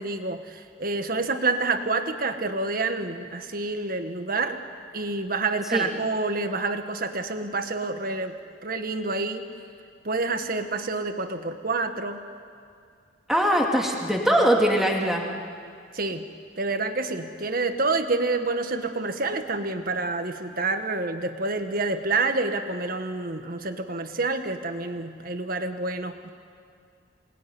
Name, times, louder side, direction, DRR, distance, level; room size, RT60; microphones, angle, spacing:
voice 1, 0.0-4.6 4.9-8.3 8.6-9.5 10.0-12.3 15.9-16.3 16.6-26.3, right 3 dB, 50° right, 7 dB, 1.6 m, -28 dB
voice 2, 13.3-15.3, equal, ahead, -1 dB, 2.9 m, -21 dB
27.5 x 20.0 x 9.7 m, 2.3 s
head